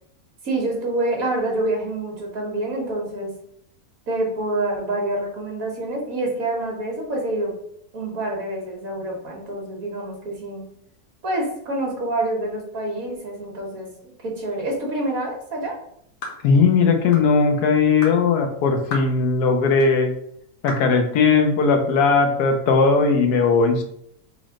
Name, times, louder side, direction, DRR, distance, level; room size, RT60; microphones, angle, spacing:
voice 1, 0.4-3.3 4.1-7.5 7.9-10.7 11.2-15.8, right 2 dB, 65° right, -1 dB, 1.7 m, -27 dB
sound 1, 16.2-16.4 17.1-17.3 18.0-18.2 18.9-19.1 19.8-19.9 20.7-20.9, left 2 dB, 65° left, 1.4 m, -33 dB
voice 2, 16.4-20.1 20.6-23.8, left 4 dB, 85° left, 4 dB, 1.3 m, -18 dB
4.1 x 3.4 x 3.7 m, 0.71 s
omnidirectional pair, 1.6 m